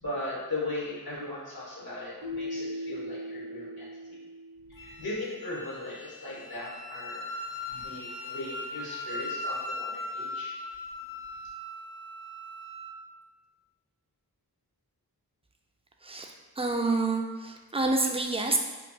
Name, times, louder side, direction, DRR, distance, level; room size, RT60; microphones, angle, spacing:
voice 1, 0.0-4.2 4.7-7.3 7.7-10.5, left 2 dB, 75° left, -7 dB, 1.4 m, -38 dB
Keyboard (musical), 2.2-5.1, left 1 dB, 75° right, 0.9 m, -39 dB
Wind instrument woodwind instrument, 4.8-12.9, left 2 dB, 60° left, 0.6 m, -39 dB
voice 2, 16.0-18.6, right 3 dB, 15° right, 2 dB, 0.4 m, -28 dB
4.4 x 2.4 x 2.7 m, 1.3 s
wide cardioid pair, 55°, 37 cm